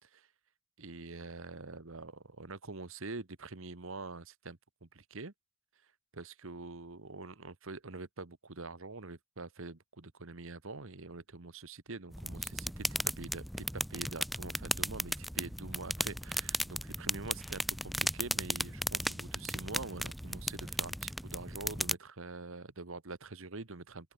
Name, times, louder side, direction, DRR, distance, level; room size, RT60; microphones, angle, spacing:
voice 1, 0.8-5.3 6.1-24.1, right 3 dB, 60° right, 1.3 m, -45 dB
sound 1, 12.1-21.9, equal, ahead, 0.6 m, -36 dB
open air
head